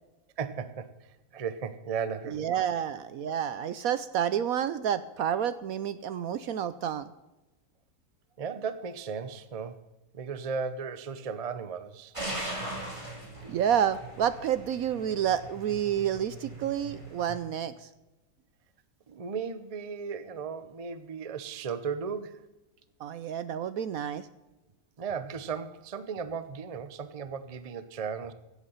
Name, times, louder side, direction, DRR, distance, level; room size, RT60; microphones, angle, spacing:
voice 1, 0.4-2.5 8.4-9.8 10.1-12.1 19.1-22.4 25.0-28.3, right 6 dB, 40° right, 12 dB, 0.5 m, -36 dB
voice 2, 2.3-7.1 13.5-17.9 23.0-24.3, right 9 dB, 70° right, 14 dB, 0.9 m, -29 dB
sound 1, 12.1-17.4, right 1 dB, 15° right, 2.8 m, -40 dB
15.5 x 8.3 x 5.6 m, 1.0 s
omnidirectional pair, 1.9 m